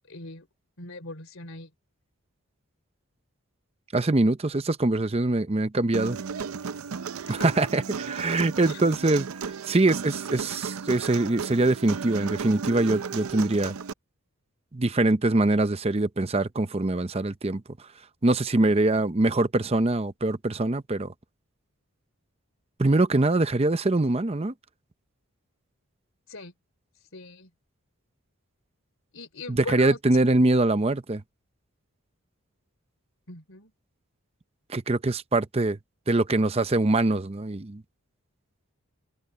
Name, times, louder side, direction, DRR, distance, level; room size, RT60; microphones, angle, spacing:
voice 1, 0.1-0.5 0.8-1.7 7.3-7.5 8.6-8.8 26.3-26.5 27.1-27.5 29.1-30.2 33.3-33.7, left 3 dB, 65° left, 3.5 m, -40 dB
voice 2, 3.9-6.2 7.3-13.7 14.7-17.6 18.2-21.1 22.8-24.5 29.5-31.2 34.7-35.8 36.1-37.8, right 2 dB, 25° right, 0.6 m, -23 dB
Human voice, 5.9-13.9, right 6 dB, 80° right, 0.6 m, -34 dB
head